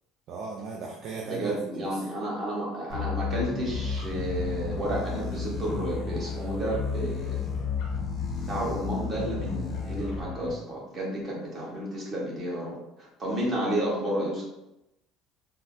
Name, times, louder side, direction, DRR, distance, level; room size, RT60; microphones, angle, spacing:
voice 1, 0.3-2.0, right 4 dB, 55° right, -1 dB, 0.4 m, -37 dB
voice 2, 1.2-7.5 8.5-14.4, right 1 dB, 40° right, -4 dB, 1.3 m, -31 dB
sound 1, 2.9-10.5, left 5 dB, 75° left, 0.7 m, -34 dB
sound 2, 3.3-10.2, left 4 dB, 20° left, 0.7 m, -36 dB
3.6 x 2.2 x 2.6 m, 0.88 s
cardioid pair, 115°, 0 cm